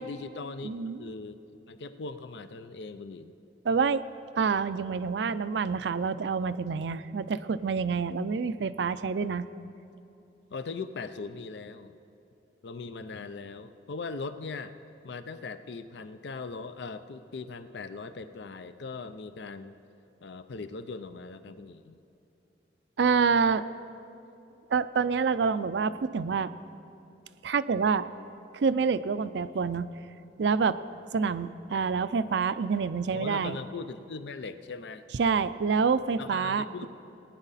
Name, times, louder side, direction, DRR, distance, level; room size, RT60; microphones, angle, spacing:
voice 1, 0.0-0.7 1.0-1.4 1.7-3.4 10.5-11.9 12.6-14.7 15.0-19.8 20.2-22.0 33.1-35.0 36.2-36.9, left 4 dB, 75° left, 11 dB, 0.5 m, -40 dB
voice 2, 0.6-1.0 3.6-4.0 4.4-9.5 23.0-23.6 24.7-26.5 27.4-28.0 28.5-29.9 30.4-30.8 31.1-33.6 35.2-36.6, right 5 dB, 75° right, 14 dB, 0.4 m, -27 dB
19.0 x 9.9 x 4.1 m, 2.7 s
head